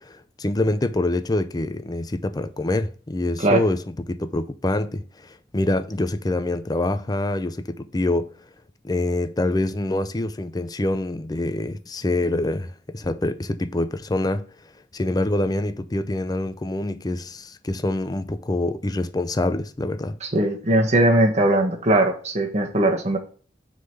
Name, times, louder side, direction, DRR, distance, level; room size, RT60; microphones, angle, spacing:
voice 1, 0.0-8.3 8.8-14.5 14.9-20.2, left 2 dB, 20° left, 0.5 m, -25 dB
voice 2, 20.2-23.2, right 1 dB, 40° right, 1.4 m, -20 dB
6.3 x 3.9 x 5.6 m
head